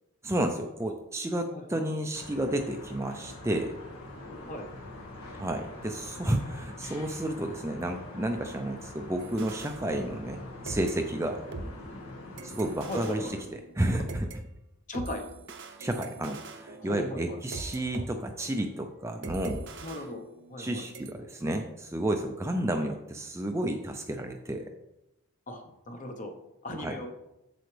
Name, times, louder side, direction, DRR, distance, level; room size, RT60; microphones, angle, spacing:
voice 1, 0.2-3.8 5.4-10.4 10.6-11.4 12.4-14.3 15.8-19.7 20.6-24.7 26.8-27.0, right 1 dB, 10° right, 4 dB, 0.4 m, -31 dB
voice 2, 1.5-1.8 4.5-4.7 12.9-13.3 14.9-15.3 16.8-17.4 19.8-20.2 20.5-20.9 25.5-26.3 26.6-27.1, left 1 dB, 35° left, 5 dB, 0.9 m, -38 dB
sound 1, 2.1-13.4, left 2 dB, 75° left, 1.7 m, -44 dB
sound 2, 9.2-10.4 10.7-14.4 14.9-18.1 18.4-18.6 19.2-20.7 20.9-21.1, right 3 dB, 50° right, 0.7 m, -42 dB
7.8 x 6.9 x 3.3 m, 0.89 s
head